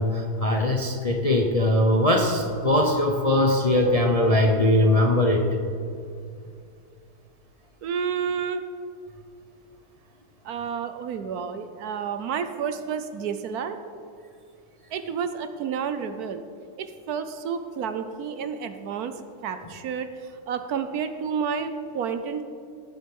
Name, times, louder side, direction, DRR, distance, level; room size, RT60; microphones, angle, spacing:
voice 1, 0.0-5.4, left 1 dB, 35° left, 2 dB, 0.6 m, -21 dB
voice 2, 7.8-8.6 10.4-13.8 14.9-16.4 16.8-22.4, right 7 dB, 70° right, 9 dB, 1.1 m, -30 dB
18.0 x 7.6 x 5.3 m, 2.4 s
omnidirectional pair, 1.8 m